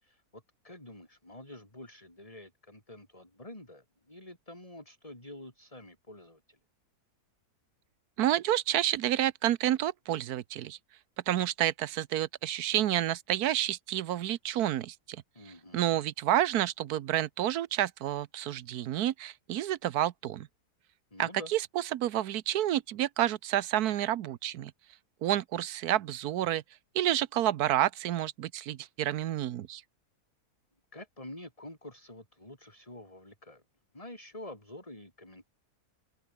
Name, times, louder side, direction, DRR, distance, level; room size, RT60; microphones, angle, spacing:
voice 1, 0.0-6.6 15.4-16.0 21.1-21.5 30.9-33.6 33.9-35.4, left 1 dB, 20° left, 5.4 m, -48 dB
voice 2, 8.2-10.8 11.3-15.2 15.7-20.5 21.2-24.7 25.2-26.6 26.9-29.8, right 12 dB, 75° right, 1.2 m, -29 dB
open air
omnidirectional pair, 1.7 m